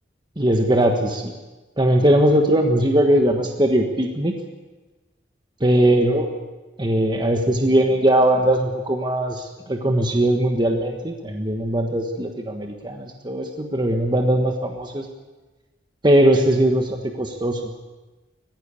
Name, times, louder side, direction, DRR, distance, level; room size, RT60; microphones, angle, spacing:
voice 1, 0.4-1.3 1.8-4.3 5.6-6.3 6.8-15.0 16.0-17.6, right 1 dB, 25° right, 3 dB, 1.4 m, -20 dB
20.5 x 15.5 x 8.5 m, 1.2 s
head